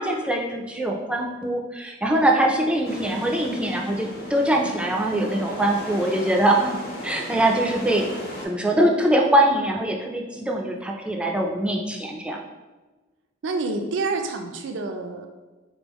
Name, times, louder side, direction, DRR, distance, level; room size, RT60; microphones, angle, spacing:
voice 1, 0.0-8.0 8.4-12.4, right 1 dB, 5° right, 0 dB, 0.3 m, -23 dB
sound 1, 2.8-8.5, equal, 55° left, 1.0 m, -36 dB
voice 2, 13.4-15.3, right 3 dB, 80° right, 5 dB, 0.5 m, -28 dB
3.9 x 3.6 x 3.0 m, 1.2 s
head